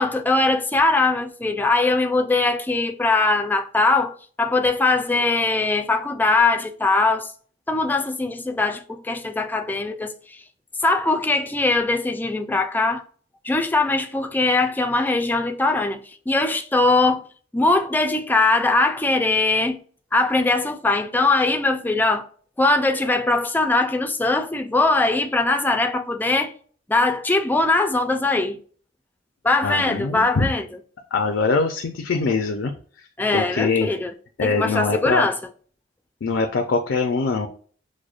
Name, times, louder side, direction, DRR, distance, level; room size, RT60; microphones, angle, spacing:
voice 1, 0.0-7.3 7.7-10.4 10.8-13.0 13.4-17.2 17.5-19.8 20.1-22.3 22.6-26.5 26.9-28.6 29.4-30.7 33.2-34.1 34.4-35.4, left 3 dB, 10° left, 0.3 m, -21 dB
voice 2, 29.6-30.5 31.1-32.7 33.3-33.9 34.4-35.3 36.2-37.5, left 4 dB, 75° left, 0.4 m, -23 dB
6.2 x 2.1 x 2.4 m
head